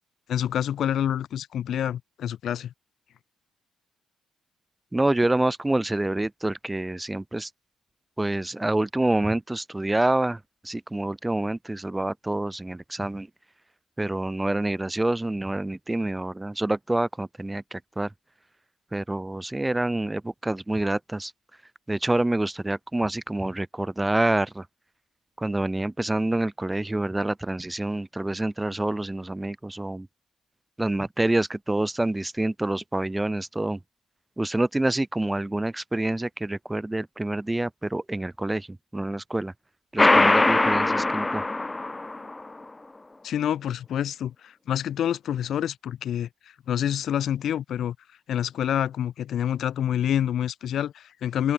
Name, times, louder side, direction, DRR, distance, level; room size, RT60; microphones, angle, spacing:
voice 1, 0.3-2.7 43.2-46.3 46.7-48.0 48.3-51.5, left 10 dB, 70° left, 3.0 m, -27 dB
voice 2, 4.9-7.5 8.2-13.3 14.0-18.1 18.9-21.3 21.9-24.7 25.4-30.1 30.8-33.8 34.4-39.5 39.9-41.4, right 2 dB, 10° right, 1.8 m, -27 dB
sound 1, 40.0-42.4, left 2 dB, 15° left, 1.1 m, -21 dB
cardioid pair, 90°, 0 cm